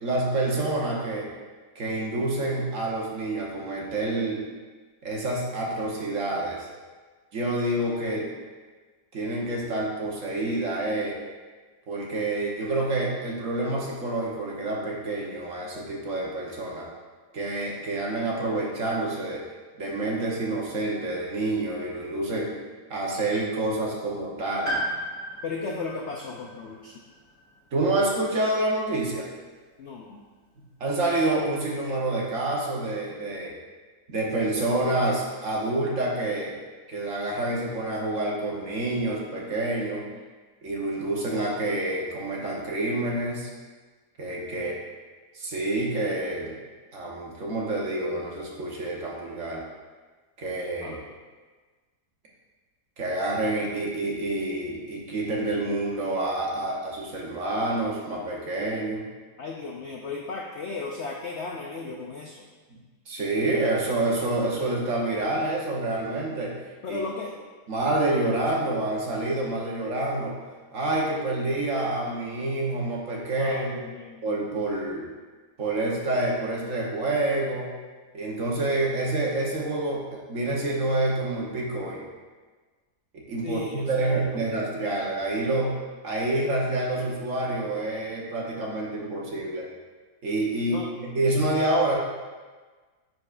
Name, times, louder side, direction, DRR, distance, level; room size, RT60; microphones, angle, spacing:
voice 1, 0.0-1.3 1.7-4.4 5.0-6.7 7.3-8.3 9.1-11.2 11.9-16.9 17.3-19.4 19.8-22.5 22.9-24.7 27.7-29.3 30.8-33.5 34.1-36.5 36.9-40.0 40.6-43.5 44.2-44.7 45.3-46.6 46.9-49.6 50.4-51.0 53.0-59.1 63.1-66.5 66.9-67.0 67.7-70.4 70.7-73.8 74.2-75.1 75.6-77.7 78.1-82.0 83.1-85.8 86.0-89.7 90.2-92.0, right 2 dB, 55° right, -3 dB, 1.3 m, -28 dB
Piano, 24.6-28.5 28.8-28.9 30.0-30.1, equal, 10° left, 1.1 m, -35 dB
voice 2, 25.4-27.0 29.8-30.2 44.5-44.7 50.8-51.0 59.4-62.4 66.8-67.3 73.4-74.2 83.4-84.5 90.7-90.9, left 3 dB, 70° left, 0 dB, 0.6 m, -35 dB
9.7 x 4.6 x 2.5 m, 1.4 s
omnidirectional pair, 1.8 m